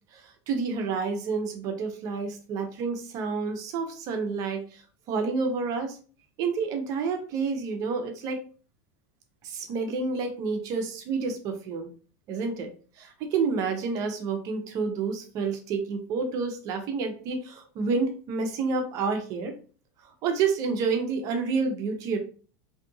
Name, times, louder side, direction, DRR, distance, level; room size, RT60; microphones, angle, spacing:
voice 1, 0.1-4.8 5.1-6.0 6.4-8.4 9.4-11.9 12.3-12.7 13.0-19.6 20.2-22.2, right 4 dB, 45° right, 5 dB, 0.6 m, -29 dB
2.7 x 2.4 x 2.7 m, 0.39 s
supercardioid pair, 130°, 8 cm